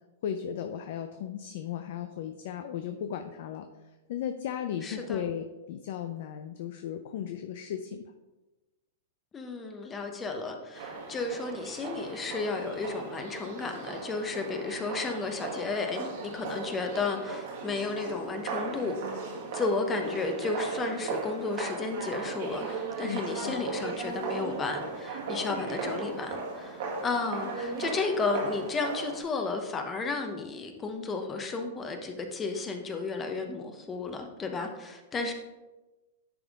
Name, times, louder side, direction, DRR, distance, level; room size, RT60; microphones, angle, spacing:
voice 1, 0.2-3.7 4.1-8.0 23.0-23.6, left 9 dB, 60° left, 7 dB, 0.4 m, -36 dB
voice 2, 4.8-5.2 9.3-18.9 19.5-35.3, left 4 dB, 20° left, 5 dB, 0.9 m, -33 dB
sound 1, 10.7-29.2, right 4 dB, 60° right, 1.6 m, -37 dB
10.5 x 3.6 x 3.6 m, 1.1 s
hypercardioid pair, 110°, 0 cm